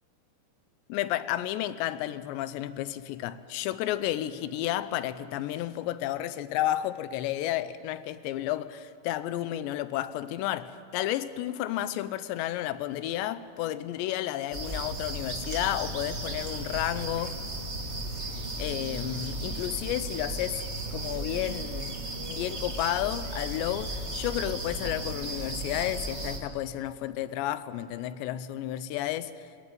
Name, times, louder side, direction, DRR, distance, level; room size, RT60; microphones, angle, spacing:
voice 1, 0.9-17.4 18.3-20.6 20.9-22.0 22.3-29.5, left 13 dB, 85° left, 14 dB, 3.0 m, -32 dB
sound 1, 14.5-26.4, right 2 dB, 55° right, 0.7 m, -35 dB
23.0 x 18.0 x 9.3 m, 2.3 s
omnidirectional pair, 5.0 m